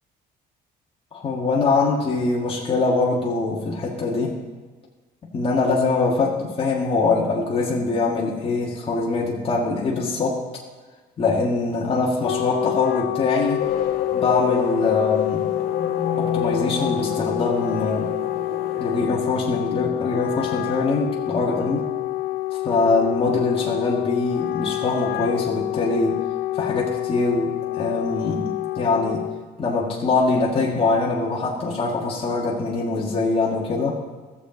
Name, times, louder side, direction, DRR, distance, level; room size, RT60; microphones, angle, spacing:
voice 1, 1.1-4.4 5.3-10.4 11.2-13.7 14.1-15.5 16.2-18.1 18.8-21.9 22.6-26.2 26.5-29.2 29.6-34.0, left 3 dB, 35° left, -4 dB, 1.8 m, -23 dB
Wind instrument woodwind instrument, 12.0-29.5, left 16 dB, 80° left, 0.4 m, -27 dB
sound 1, 13.6-19.1, left 7 dB, 60° left, 2.2 m, -28 dB
15.0 x 7.5 x 4.0 m, 1.4 s
cardioid pair, 110°, 17 cm